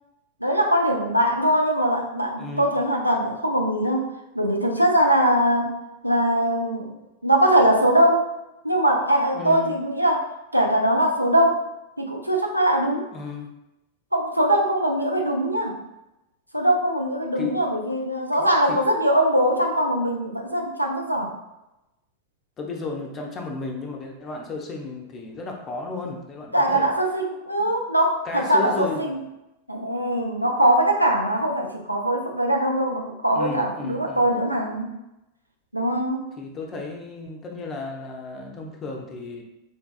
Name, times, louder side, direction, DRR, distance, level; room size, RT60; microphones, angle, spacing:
voice 1, 0.4-5.7 6.0-6.9 7.2-8.3 8.6-11.7 12.0-13.1 14.1-15.7 16.5-21.3 26.5-29.2 29.7-34.9 35.7-36.2, right 1 dB, 90° right, 1 dB, 0.4 m, -22 dB
voice 2, 2.4-2.7 9.3-9.7 13.1-13.5 17.4-17.6 18.7-18.8 22.6-26.9 27.6-27.8 28.2-29.2 33.3-34.4 36.4-39.4, left 3 dB, 25° left, 1 dB, 0.5 m, -33 dB
3.8 x 2.3 x 2.3 m, 0.94 s
figure-of-eight pair, 90°, 0 cm